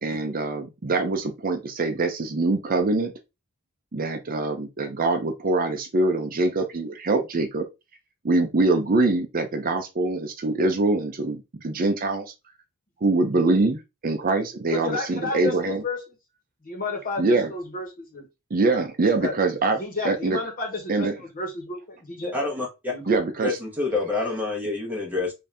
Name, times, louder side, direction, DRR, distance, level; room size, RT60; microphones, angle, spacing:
voice 1, 0.0-3.1 3.9-7.6 8.2-12.3 13.0-15.8 17.2-17.5 18.5-19.8 20.0-20.4 20.9-21.1 23.1-23.6, right 3 dB, 40° right, 0.6 m, -24 dB
voice 2, 14.7-16.0 16.6-18.3 19.2-19.3 19.8-22.4 22.9-23.2, left 3 dB, 40° left, 1.4 m, -31 dB
voice 3, 22.3-22.9 23.4-25.3, left 3 dB, 10° right, 1.2 m, -27 dB
3.9 x 2.7 x 3.3 m
head